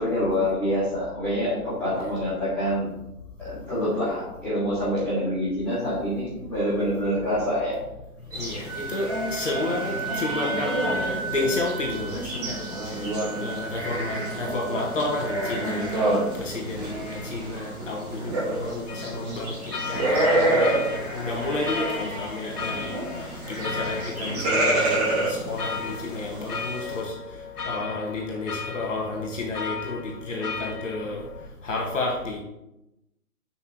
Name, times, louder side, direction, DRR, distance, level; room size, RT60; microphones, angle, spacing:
voice 1, 0.0-2.9 3.4-7.8, equal, 5° left, -18 dB, 2.4 m, -26 dB
voice 2, 8.3-12.7 13.4-16.0 16.4-19.5 19.9-23.0 23.5-27.1 27.7-31.2 31.6-32.4, left 2 dB, 55° left, -2 dB, 2.1 m, -31 dB
sound 1, 8.3-27.0, right 1 dB, 25° right, 2.9 m, -29 dB
Wind instrument woodwind instrument, 8.7-16.4, right 4 dB, 65° right, 1.5 m, -36 dB
sound 2, 18.9-31.5, left 5 dB, 80° left, 0.9 m, -36 dB
9.4 x 6.2 x 3.2 m, 0.90 s
hypercardioid pair, 160°, 46 cm